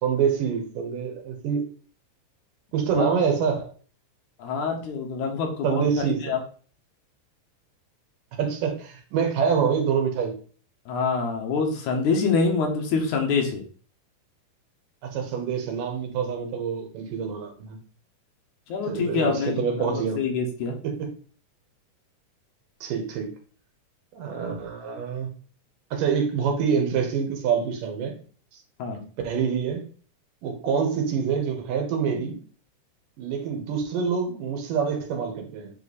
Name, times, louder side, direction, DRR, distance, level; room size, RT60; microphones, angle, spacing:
voice 1, 0.0-1.6 2.7-3.7 5.6-6.2 8.4-10.3 15.0-17.8 18.9-20.2 20.8-20.9 22.8-23.3 24.1-25.3 25.9-28.1 28.9-29.9 30.4-32.4 33.2-35.7, right 6 dB, 90° right, 3 dB, 2.9 m, -26 dB
voice 2, 4.4-6.4 10.9-13.6 18.7-20.8 24.4-24.6 28.8-29.0, left 4 dB, 70° left, 2 dB, 2.4 m, -26 dB
7.8 x 3.2 x 4.1 m, 0.43 s
omnidirectional pair, 3.7 m